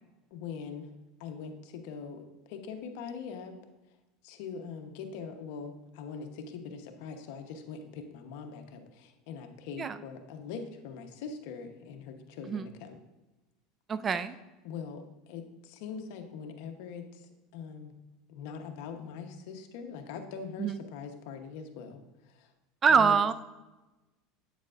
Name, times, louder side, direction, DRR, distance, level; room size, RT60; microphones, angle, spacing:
voice 1, 0.3-0.9 1.2-3.5 4.2-13.0 14.6-17.9 18.3-22.0 22.3-22.5 23.0-23.2, left 6 dB, 70° left, 5 dB, 1.0 m, -42 dB
voice 2, 12.5-12.8 13.9-14.3 20.6-20.8 22.8-23.3, right 6 dB, 25° right, 14 dB, 0.3 m, -25 dB
8.5 x 7.2 x 2.5 m, 1.1 s
supercardioid pair, 130°, 0 cm